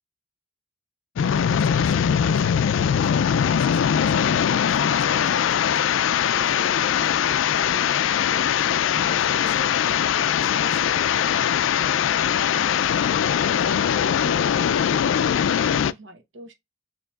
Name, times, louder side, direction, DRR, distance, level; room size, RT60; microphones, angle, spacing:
Afterburner sound, 1.2-15.9, left 8 dB, 75° left, 0.3 m, -21 dB
voice 1, 1.2-8.2 8.6-11.5 11.8-12.1, left 3 dB, 45° left, 0.7 m, -40 dB
voice 2, 8.3-8.6 12.5-16.5, right 1 dB, 75° right, 1.0 m, -43 dB
6.9 x 2.9 x 2.3 m
head